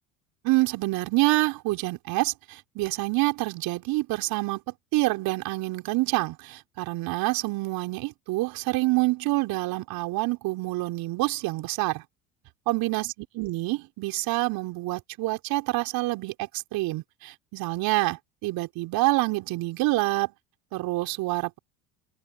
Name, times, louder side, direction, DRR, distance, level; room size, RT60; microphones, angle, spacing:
voice 1, 0.4-12.0 12.7-13.1 13.4-20.3 20.7-21.6, right 20 dB, 60° right, 3.9 m, -27 dB
open air
hypercardioid pair, 70°, 40 cm